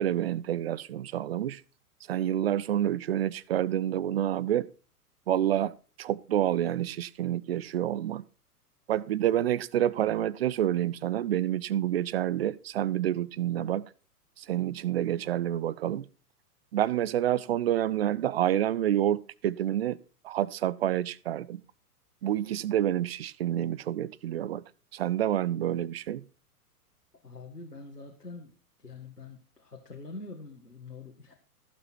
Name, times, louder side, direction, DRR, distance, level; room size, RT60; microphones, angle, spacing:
voice 1, 0.0-1.6 2.1-4.7 5.3-5.7 6.0-8.2 8.9-13.8 14.4-16.0 16.7-20.0 20.2-21.6 22.2-24.6 24.9-26.2, right 11 dB, 40° right, 0.6 m, -28 dB
voice 2, 27.2-28.5 28.8-31.3, left 3 dB, 85° left, 2.0 m, -45 dB
15.0 x 7.2 x 4.5 m
figure-of-eight pair, 105°, 46 cm